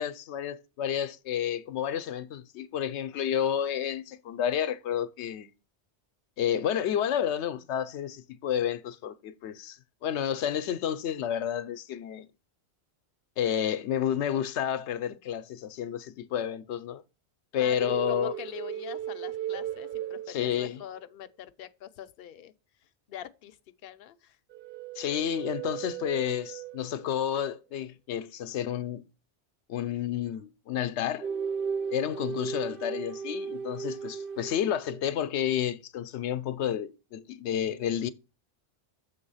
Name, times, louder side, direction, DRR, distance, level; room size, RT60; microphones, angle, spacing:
voice 1, 0.0-5.5 6.4-12.3 13.4-17.0 17.5-18.3 20.3-20.8 25.0-29.0 29.7-31.3 31.9-38.1, left 9 dB, 90° left, 0.9 m, -30 dB
sound 1, 17.8-21.0 24.5-27.1 31.2-35.0, right 7 dB, 60° right, 0.7 m, -36 dB
voice 2, 18.1-22.5 22.8-24.4, left 11 dB, 60° left, 0.8 m, -44 dB
6.9 x 3.7 x 5.5 m
omnidirectional pair, 1.1 m